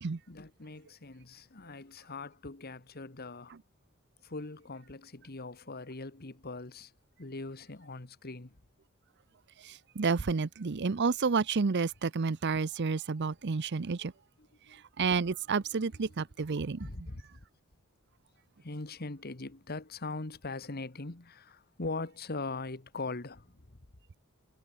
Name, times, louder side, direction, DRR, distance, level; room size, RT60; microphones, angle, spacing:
voice 1, 0.3-3.5 4.2-6.9 7.2-8.5 14.4-14.8 15.8-16.1 16.8-17.2 18.6-23.8, left 3 dB, 45° left, 1.5 m, -41 dB
voice 2, 9.6-14.1 15.0-16.9, right 4 dB, 55° right, 0.6 m, -30 dB
head